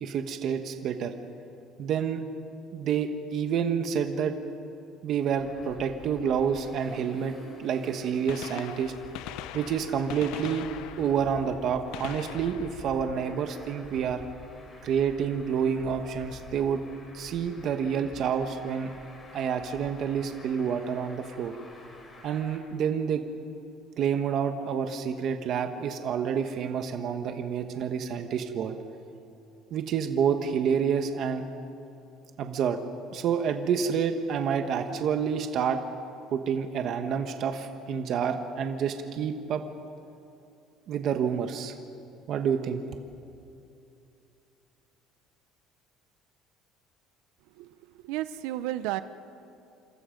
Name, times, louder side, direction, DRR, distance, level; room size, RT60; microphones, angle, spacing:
voice 1, 0.0-1.1 1.8-2.2 2.7-4.3 5.0-8.9 9.5-10.7 11.0-14.2 14.8-16.8 17.1-18.9 19.3-21.6 22.2-23.2 24.0-28.8 29.7-31.5 32.4-32.8 33.1-35.8 36.3-39.6 40.9-41.7 42.3-42.8, right 7 dB, 40° right, 6 dB, 1.3 m, -28 dB
Traffic noise roadway noise, 5.4-22.6, left 2 dB, 20° left, 4.3 m, -49 dB
Gunshot gunfire, 8.3-14.0 15.9-16.1 17.1-17.2 18.8-18.9 20.3-20.4 20.5-20.6, left 12 dB, 65° left, 0.8 m, -42 dB
voice 2, 48.0-49.0, right 15 dB, 85° right, 12 dB, 0.7 m, -32 dB
27.5 x 27.5 x 5.3 m, 2.7 s
cardioid pair, 175°, 0 cm